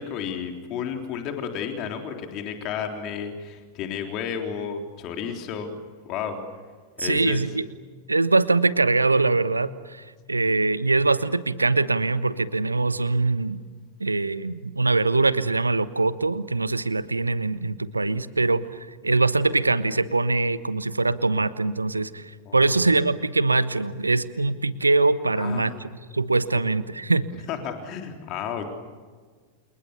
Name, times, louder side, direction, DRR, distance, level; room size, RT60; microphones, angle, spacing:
voice 1, 0.0-5.7 6.1-6.4 7.0-7.4 22.5-22.8 25.3-25.9 26.5-26.6 27.5-28.7, left 7 dB, 40° left, 4 dB, 3.7 m, -32 dB
voice 2, 7.0-7.7 8.1-13.6 14.0-27.3, right 3 dB, 80° right, 15 dB, 1.2 m, -23 dB
29.0 x 29.0 x 6.9 m, 1.5 s
figure-of-eight pair, 90°, 0 cm